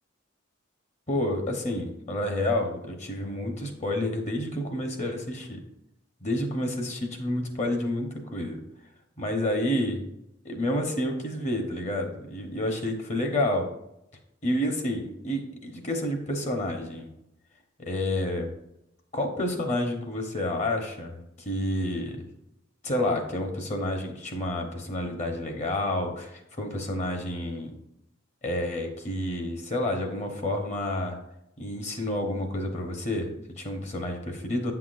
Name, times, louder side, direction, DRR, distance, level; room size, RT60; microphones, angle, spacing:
voice 1, 1.1-5.6 6.2-8.6 9.2-10.0 10.4-13.7 14.4-17.1 17.8-18.5 19.1-22.3 22.8-27.7 28.4-31.2 31.6-34.7, left 1 dB, 35° left, 4 dB, 0.9 m, -29 dB
8.4 x 5.8 x 2.5 m, 0.83 s
head